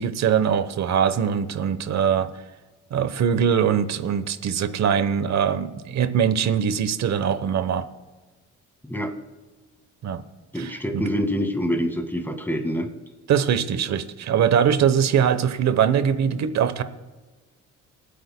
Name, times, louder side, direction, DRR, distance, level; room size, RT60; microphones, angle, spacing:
voice 1, 0.0-2.3 2.9-7.9 10.0-10.2 10.5-11.1 13.3-16.8, right 8 dB, 60° right, 13 dB, 1.0 m, -22 dB
voice 2, 10.5-12.9, equal, 5° left, 4 dB, 1.8 m, -26 dB
29.5 x 9.9 x 2.2 m, 1.3 s
cardioid pair, 90°, 30 cm